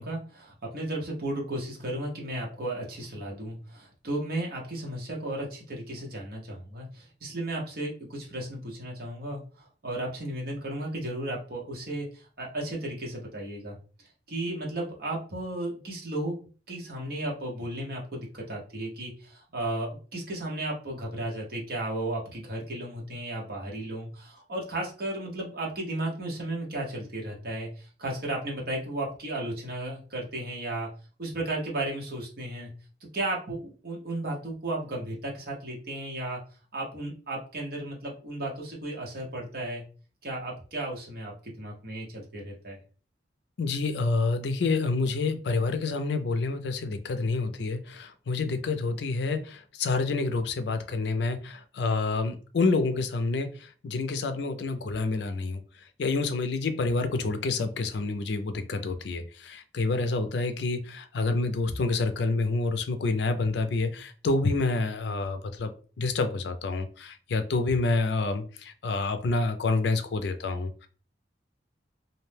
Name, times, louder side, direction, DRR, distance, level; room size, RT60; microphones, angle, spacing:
voice 1, 0.0-13.8 14.3-16.3 16.7-30.9 31.2-32.7 33.1-36.4 36.7-39.8 40.2-42.8, right 1 dB, 55° right, -2 dB, 0.9 m, -34 dB
voice 2, 43.6-70.9, left 3 dB, 70° left, 9 dB, 0.4 m, -28 dB
2.6 x 2.1 x 3.2 m, 0.38 s
head